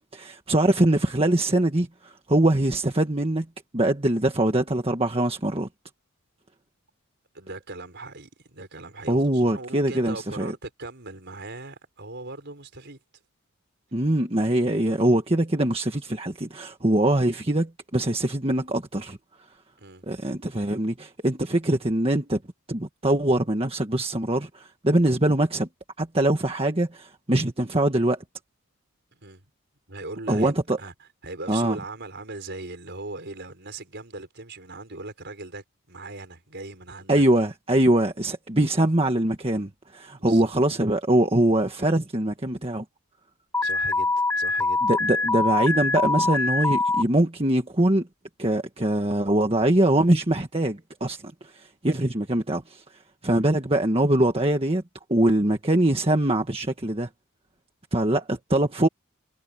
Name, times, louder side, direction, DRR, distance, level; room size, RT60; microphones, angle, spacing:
voice 1, 0.0-3.4 3.7-5.7 9.1-10.5 13.9-19.2 20.1-22.4 22.7-25.7 26.0-28.2 30.3-30.8 31.5-31.8 37.1-42.8 44.9-48.1 48.4-52.8 53.2-54.8 55.1-57.1 57.9-58.9, right 1 dB, 25° right, 1.6 m, -23 dB
voice 2, 7.3-13.0 19.8-20.0 29.1-29.4 29.9-37.2 40.2-40.5 43.6-44.8 53.3-53.6, right 2 dB, 50° right, 5.0 m, -39 dB
Alarm, 43.5-47.0, left 3 dB, 10° left, 0.3 m, -24 dB
head